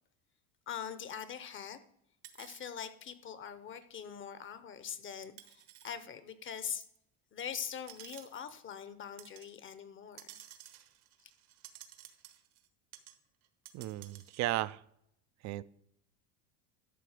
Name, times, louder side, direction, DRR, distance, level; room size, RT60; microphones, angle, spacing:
voice 1, 0.7-1.8 2.4-6.8 7.3-10.4, left 8 dB, 30° left, 13 dB, 0.8 m, -43 dB
sound 1, 2.2-2.7 3.8-3.9 5.4-6.0 6.7-7.0 7.7-8.6 9.2-9.5 10.1-12.7 12.9-13.2 13.4-14.4, right 12 dB, 70° right, 1.2 m, -54 dB
voice 2, 13.7-14.8 15.4-15.6, right 16 dB, 45° right, 18 dB, 0.4 m, -35 dB
12.0 x 6.7 x 4.9 m, 0.73 s
cardioid pair, 125°, 39 cm